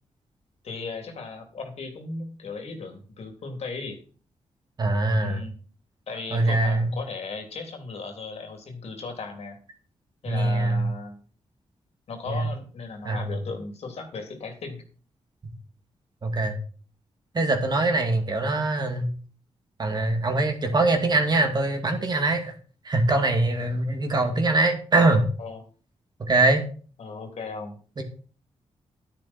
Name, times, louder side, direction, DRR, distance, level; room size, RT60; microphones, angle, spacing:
voice 1, 0.6-4.0 5.2-5.5 6.1-9.6 10.2-11.2 12.1-14.8 25.4-25.6 27.0-27.8, left 4 dB, 70° left, 4 dB, 3.2 m, -36 dB
voice 2, 4.8-5.4 6.3-6.9 10.3-10.9 12.3-12.5 13.0-13.2 16.2-16.6 17.3-19.1 19.8-22.5 22.8-25.3 26.2-26.6 28.0-28.1, right 2 dB, 40° right, 4 dB, 2.5 m, -23 dB
11.5 x 10.5 x 4.4 m, 0.41 s
wide cardioid pair, 120°, 11 cm